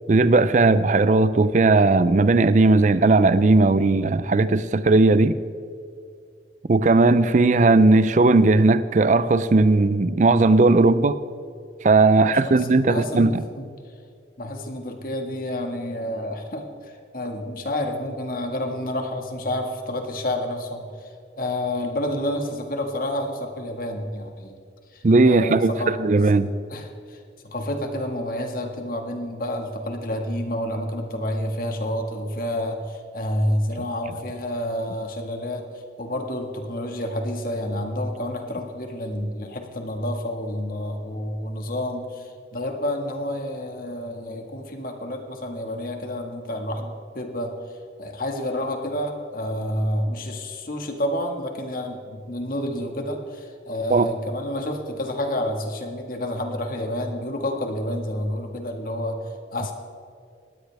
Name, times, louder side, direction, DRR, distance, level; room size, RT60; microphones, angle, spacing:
voice 1, 0.1-5.4 6.7-11.2 11.8-13.3 25.0-26.5 53.9-54.1, right 3 dB, 45° right, 0.4 m, -17 dB
voice 2, 12.2-13.3 13.6-13.7 14.4-24.5 24.9-26.0 26.7-35.6 36.0-47.5 48.0-59.2 59.5-59.7, left 1 dB, 50° left, 1.8 m, -29 dB
20.5 x 16.0 x 3.5 m
head